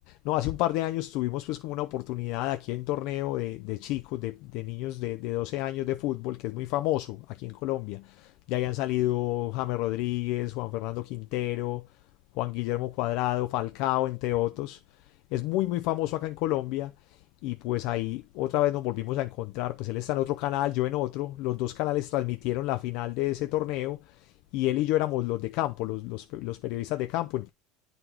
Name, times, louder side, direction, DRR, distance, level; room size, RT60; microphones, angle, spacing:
voice 1, 0.2-11.9 12.3-14.8 15.3-27.5, left 16 dB, 60° left, 0.4 m, -30 dB
9.8 x 4.0 x 2.9 m
hypercardioid pair, 80°, 0 cm